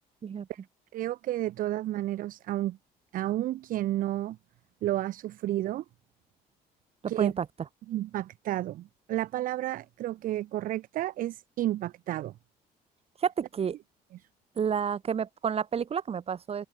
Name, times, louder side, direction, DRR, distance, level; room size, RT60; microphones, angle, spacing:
voice 1, 0.9-2.8 3.1-4.4 4.8-5.8 7.1-7.3 7.9-12.3, right 14 dB, 55° right, 0.4 m, -31 dB
voice 2, 7.0-7.5 13.2-13.8 14.6-16.7, right 7 dB, 35° right, 1.2 m, -30 dB
cardioid pair, 110°, 17 cm